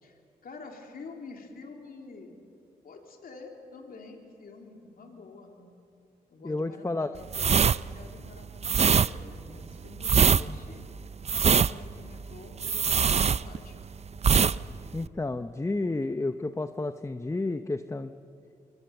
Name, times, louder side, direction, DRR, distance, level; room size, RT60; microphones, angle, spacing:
voice 1, 0.0-2.3 2.8-5.6 6.3-10.8 11.3-13.8, left 3 dB, 65° left, 2 dB, 3.4 m, -47 dB
voice 2, 6.4-7.1 10.4-10.6 14.9-18.1, left 2 dB, 20° left, 10 dB, 0.8 m, -31 dB
sound 1, 7.3-13.9 14.2-14.6 14.8-15.1, right 6 dB, 40° right, 0.6 m, -23 dB
26.0 x 23.5 x 7.1 m, 2.6 s
cardioid pair, 55°, 16 cm